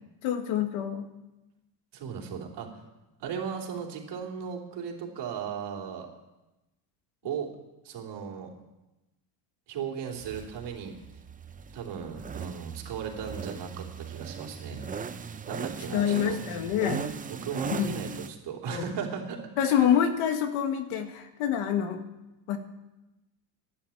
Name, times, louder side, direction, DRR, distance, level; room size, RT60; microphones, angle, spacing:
voice 1, 0.2-1.1 15.9-17.1 17.7-17.9 18.7-18.8 19.6-22.0 22.5-22.6, left 9 dB, 85° left, 7 dB, 1.8 m, -26 dB
voice 2, 1.9-2.7 3.2-6.1 7.2-7.5 7.8-8.5 9.7-10.9 11.7-14.8 15.5-16.4 17.3-19.9, right 7 dB, 55° right, 1 dB, 3.3 m, -36 dB
sound 1, 10.1-18.3, right 6 dB, 15° right, 0.5 m, -39 dB
12.0 x 10.5 x 8.5 m, 1.0 s
cardioid pair, 135°, 48 cm